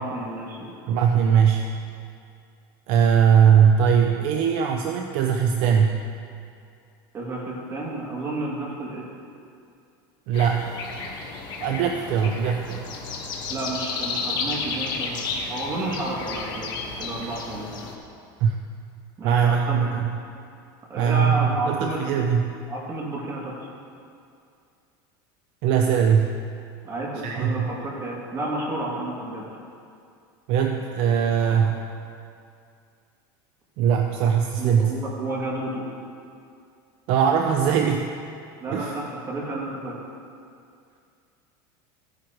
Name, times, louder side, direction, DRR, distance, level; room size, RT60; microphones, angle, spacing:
voice 1, 0.0-0.7 7.1-9.1 13.5-15.2 15.5-16.7 17.0-17.7 19.2-19.8 20.9-22.0 22.7-23.7 26.8-29.4 31.3-31.6 34.6-35.9 38.6-40.0, right 2 dB, 25° right, -4 dB, 2.5 m, -31 dB
voice 2, 0.9-1.6 2.9-6.0 10.3-10.7 11.6-12.9 18.4-18.6 19.2-20.1 21.0-22.5 25.6-26.3 27.2-27.7 30.5-31.8 33.8-34.9 37.1-38.1 38.7-38.9, right 7 dB, 55° right, 3 dB, 0.7 m, -20 dB
sound 1, 10.3-17.9, left 4 dB, 40° left, 1.4 m, -32 dB
15.0 x 10.0 x 3.1 m, 2.4 s
supercardioid pair, 150°, 11 cm